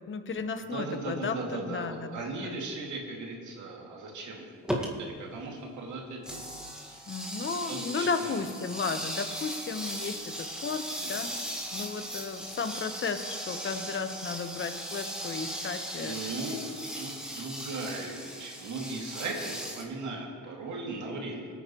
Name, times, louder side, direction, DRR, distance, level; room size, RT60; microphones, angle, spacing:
voice 1, 0.1-2.6 7.1-11.4 11.7-16.4, left 4 dB, 40° left, 8 dB, 1.0 m, -34 dB
voice 2, 0.6-4.4 4.8-6.5 6.9-7.1 7.7-8.4 11.0-11.3 16.0-16.6 17.0-21.5, right 3 dB, 75° right, -1 dB, 2.4 m, -38 dB
sound 1, 4.6-4.9 6.2-19.8, equal, 5° right, 1.8 m, -38 dB
19.5 x 9.3 x 3.1 m, 2.2 s
cardioid pair, 90°, 30 cm